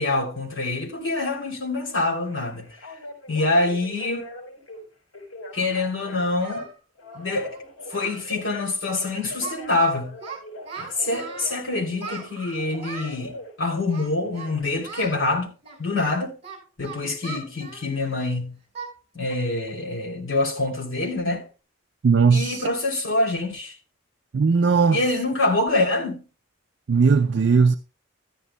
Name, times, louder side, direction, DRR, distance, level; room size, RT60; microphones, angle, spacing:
voice 1, 0.0-2.7 3.3-4.3 5.5-6.6 7.1-10.1 10.7-15.5 15.8-16.3 16.8-18.5 19.1-21.4 22.3-23.7 24.9-26.2, left 2 dB, 65° left, 3.1 m, -25 dB
Telephone, 2.2-4.8 5.1-6.6 7.0-8.5 8.8-12.3 12.6-14.7, left 1 dB, 85° left, 4.3 m, -42 dB
Singing, 4.7-4.8 5.5-6.7 7.0-7.2 7.5-7.6 7.9-8.3 8.5-8.8 9.0-9.9 10.2-11.5 12.0-13.2 13.9-14.5 14.8-15.2 15.6-18.3 18.7-18.9 19.3-19.5 19.9-20.0 20.5-20.7, right 5 dB, 30° right, 5.3 m, -40 dB
voice 2, 22.0-22.7 24.3-25.0 26.9-27.8, right 5 dB, 55° right, 0.4 m, -18 dB
14.0 x 12.5 x 2.2 m
head